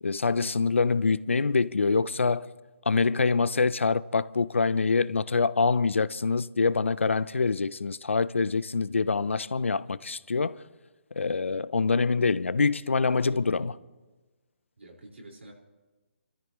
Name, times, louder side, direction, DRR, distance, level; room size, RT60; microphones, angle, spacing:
voice 1, 0.0-2.5 2.9-10.6 11.2-13.7, left 4 dB, 85° left, 0.5 m, -25 dB
voice 2, 13.3-13.7 14.8-15.5, right 1 dB, 85° right, 4.7 m, -46 dB
29.5 x 13.5 x 3.1 m
hypercardioid pair, 150°, 7 cm